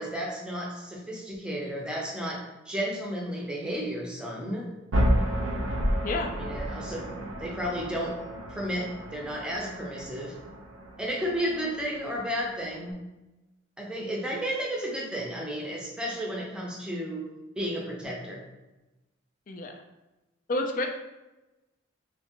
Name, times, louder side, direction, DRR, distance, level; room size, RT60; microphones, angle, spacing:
voice 1, 0.0-4.7 6.4-7.1 7.4-8.2 8.5-10.3 11.0-13.0 13.8-17.2 17.6-18.4, equal, 5° right, -3 dB, 0.6 m, -33 dB
sound 1, 4.9-12.9, equal, 85° right, 0.6 m, -31 dB
voice 2, 20.5-20.9, left 2 dB, 40° left, 4 dB, 0.4 m, -29 dB
3.3 x 2.8 x 2.9 m, 1.0 s
head